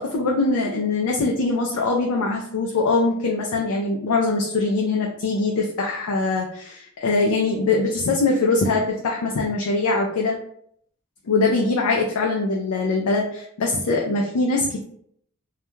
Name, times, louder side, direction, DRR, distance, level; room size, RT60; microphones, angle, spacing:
voice 1, 0.0-10.4 11.3-14.8, left 3 dB, 85° left, -1 dB, 0.4 m, -22 dB
2.3 x 2.1 x 3.0 m, 0.67 s
head